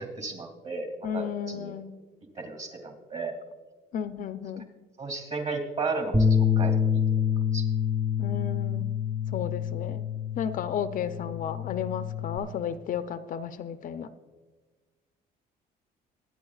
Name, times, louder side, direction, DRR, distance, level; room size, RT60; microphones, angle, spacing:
voice 1, 0.0-0.9 1.1-1.8 2.3-3.4 5.0-7.0 7.5-7.7, right 4 dB, 45° right, 5 dB, 2.4 m, -34 dB
voice 2, 1.0-2.0 3.9-4.7 8.2-8.9 9.3-10.1 10.4-14.1, left 8 dB, 55° left, 10 dB, 0.5 m, -33 dB
Bass guitar, 6.1-12.4, left 7 dB, 10° right, 0.7 m, -27 dB
23.5 x 9.4 x 2.4 m, 1.4 s
cardioid pair, 110°, 17 cm